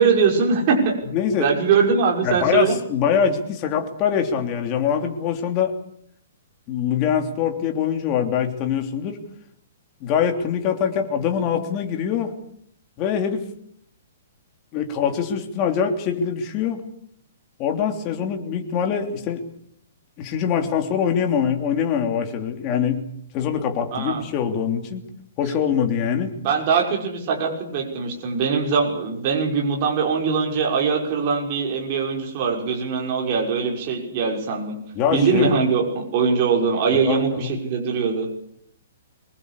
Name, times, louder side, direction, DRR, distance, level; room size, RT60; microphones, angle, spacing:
voice 1, 0.0-1.0 1.4-2.8 23.9-24.2 26.4-34.8 35.1-38.3, right 5 dB, 30° right, 0 dB, 5.8 m, -22 dB
voice 2, 1.1-1.5 2.2-5.7 6.7-9.2 10.0-12.3 13.0-13.4 14.7-16.8 17.6-19.4 20.2-23.0 23.3-25.0 25.4-26.3 34.9-35.5 36.9-37.6, left 8 dB, 25° left, 5 dB, 3.2 m, -23 dB
24.5 x 21.5 x 8.4 m, 0.68 s
hypercardioid pair, 170°, 0 cm